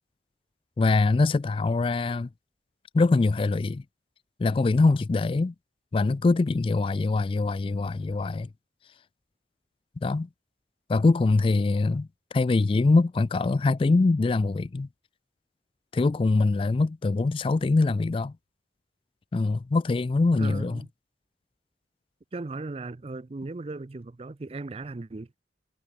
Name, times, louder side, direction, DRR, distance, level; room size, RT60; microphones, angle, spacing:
voice 1, 0.8-2.3 2.9-3.8 4.4-5.5 5.9-8.5 10.0-10.3 10.9-12.1 12.3-14.9 15.9-18.3 19.3-20.8, left 3 dB, 30° left, 0.3 m, -23 dB
voice 2, 20.4-20.9 22.3-25.3, right 3 dB, 35° right, 0.5 m, -37 dB
head